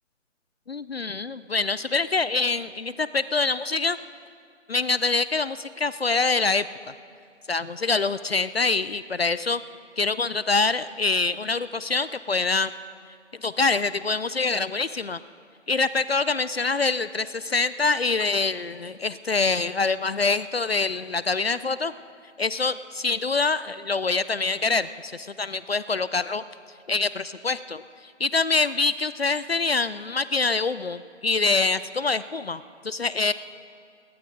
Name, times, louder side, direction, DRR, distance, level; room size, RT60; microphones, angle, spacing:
voice 1, 0.7-4.0 4.7-6.7 7.5-9.6 10.0-12.7 13.3-15.2 15.7-21.9 22.4-26.4 26.9-33.3, left 3 dB, 55° left, 16 dB, 0.4 m, -25 dB
20.0 x 18.0 x 3.8 m, 2.3 s
figure-of-eight pair, 155°, 37 cm